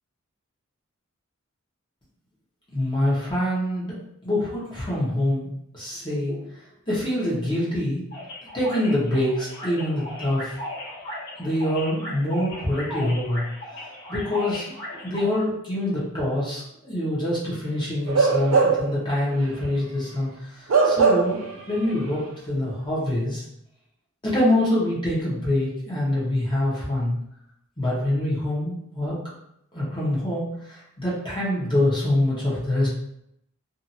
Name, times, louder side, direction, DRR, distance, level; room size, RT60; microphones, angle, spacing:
voice 1, 2.7-4.0 4.2-5.5 5.7-6.6 6.9-8.0 8.5-10.6 11.4-14.7 14.9-23.4 24.2-27.1 27.8-29.2 29.7-32.9, left 1 dB, 25° left, -8 dB, 1.0 m, -25 dB
sound 1, 8.1-15.3, left 1 dB, 55° left, 1.3 m, -36 dB
Bark / Livestock farm animals working animals, 18.1-19.0 19.4-19.6 20.7-21.5 21.8-22.0, right 4 dB, 70° right, 0.5 m, -20 dB
2.7 x 2.5 x 2.6 m, 0.76 s
head